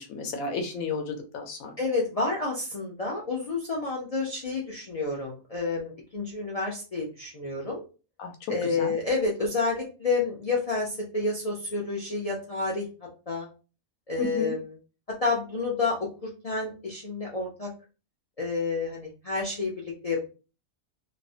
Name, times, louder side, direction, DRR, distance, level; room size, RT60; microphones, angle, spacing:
voice 1, 0.0-1.7 8.2-8.3 8.6-8.9 14.2-14.5, left 4 dB, 90° left, 4 dB, 1.1 m, -33 dB
voice 2, 1.8-7.8 8.5-12.9 13.3-13.5 14.1-14.7 15.1-17.7 18.4-20.2, left 3 dB, 70° left, -3 dB, 0.3 m, -29 dB
3.0 x 2.0 x 2.6 m, 0.33 s
omnidirectional pair, 1.4 m